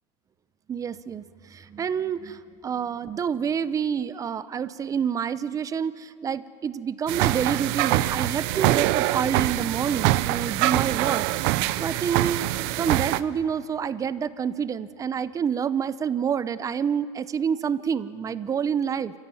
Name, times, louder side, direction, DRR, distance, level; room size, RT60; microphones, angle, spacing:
voice 1, 0.7-19.1, right 7 dB, 20° right, 15 dB, 0.7 m, -28 dB
sound 1, 7.1-13.2, right 17 dB, 60° right, 0.7 m, -24 dB
28.5 x 14.0 x 9.2 m, 2.3 s
supercardioid pair, 130°, 15 cm